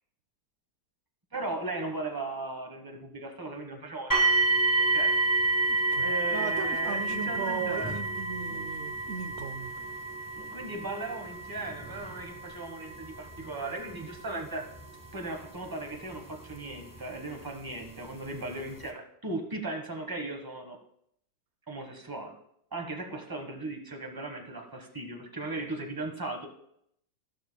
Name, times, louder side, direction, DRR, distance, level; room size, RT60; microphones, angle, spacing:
voice 1, 1.3-4.6 4.9-5.1 6.0-7.9 10.5-14.7 15.1-20.8 21.7-22.3 22.7-26.5, right 2 dB, 15° right, 3 dB, 1.2 m, -37 dB
sound 1, 4.1-17.0 17.8-17.9 18.5-18.6, right 2 dB, 15° left, 0.9 m, -30 dB
voice 2, 5.7-9.7, right 6 dB, 80° right, 8 dB, 0.6 m, -37 dB
14.5 x 12.0 x 2.3 m, 0.73 s
omnidirectional pair, 2.0 m